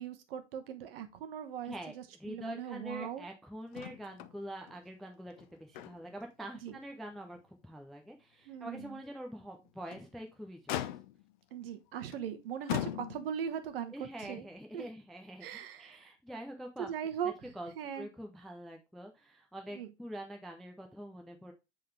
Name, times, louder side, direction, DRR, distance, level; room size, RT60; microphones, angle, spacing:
voice 1, 0.0-3.2 6.6-6.8 8.5-9.0 11.5-14.5 14.7-14.8 15.4-16.0 16.8-17.3 17.7-18.1 19.7-19.9, right 8 dB, 50° right, 9 dB, 1.2 m, -39 dB
voice 2, 2.2-10.9 13.9-15.5 15.8-16.9 17.2-21.5, right 1 dB, ahead, 3 dB, 0.4 m, -45 dB
Motor vehicle (road), 3.7-4.4 4.7-4.8 5.3-6.2 6.7-6.8 7.3-7.4 9.6-10.1 10.7-11.4 12.1-12.3 12.7-13.5 14.5-14.6, left 13 dB, 45° left, 0.6 m, -39 dB
7.5 x 4.0 x 3.2 m, 0.25 s
figure-of-eight pair, 100°, 35 cm